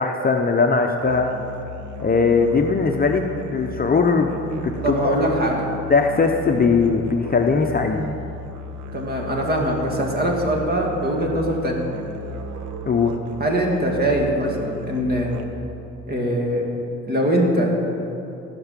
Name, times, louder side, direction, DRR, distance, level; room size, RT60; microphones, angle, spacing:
voice 1, 0.0-1.3 2.0-3.2 3.5-5.2 5.9-8.0 12.9-13.1, left 4 dB, 30° left, 3 dB, 0.8 m, -19 dB
Musical instrument, 1.0-15.7, left 1 dB, 75° right, 1.1 m, -35 dB
voice 2, 4.8-5.7 8.9-11.8 13.4-15.3 16.1-16.6 17.1-17.8, right 1 dB, 30° right, 0 dB, 2.5 m, -22 dB
15.5 x 6.1 x 7.5 m, 2.9 s
cardioid pair, 90°, 30 cm